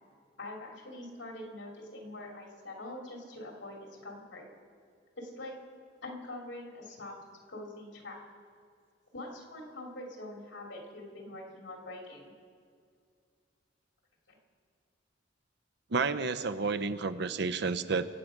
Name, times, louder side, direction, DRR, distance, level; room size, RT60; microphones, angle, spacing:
voice 1, 0.4-4.5 5.2-5.6 6.0-7.2 7.5-8.2 9.1-12.3 14.3-14.4, left 1 dB, 85° left, 0 dB, 2.9 m, -44 dB
voice 2, 15.9-18.1, right 4 dB, 65° right, 12 dB, 0.7 m, -30 dB
24.5 x 8.6 x 5.2 m, 2.2 s
head